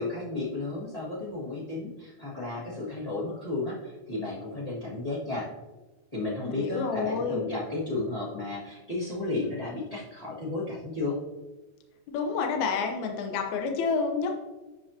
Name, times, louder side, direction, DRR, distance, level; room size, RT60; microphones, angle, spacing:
voice 1, 0.0-5.5 6.1-11.2, left 2 dB, 20° left, -8 dB, 1.1 m, -33 dB
voice 2, 6.5-7.4 12.1-14.3, left 5 dB, 75° left, 3 dB, 2.3 m, -29 dB
11.0 x 5.7 x 2.8 m, 1.1 s
omnidirectional pair, 3.7 m